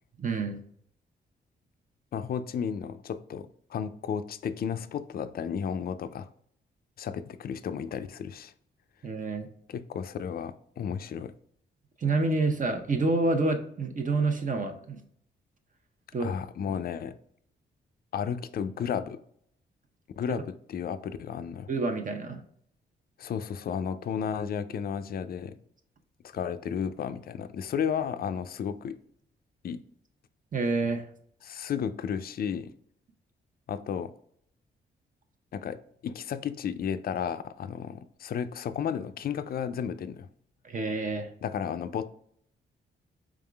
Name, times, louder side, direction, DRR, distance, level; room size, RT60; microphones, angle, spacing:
voice 1, 0.2-0.6 9.0-9.5 12.0-15.0 16.1-16.3 21.7-22.4 30.5-31.0 40.6-41.3, right 3 dB, 40° right, 0.8 m, -28 dB
voice 2, 2.1-6.3 7.0-8.5 9.7-11.3 16.2-17.1 18.1-19.2 20.2-21.7 23.2-25.6 26.3-29.0 29.6-29.8 31.4-32.7 33.7-34.1 35.5-40.3 41.4-42.0, left 7 dB, 50° left, 0.4 m, -33 dB
4.8 x 3.6 x 2.3 m
cardioid pair, 65°, 20 cm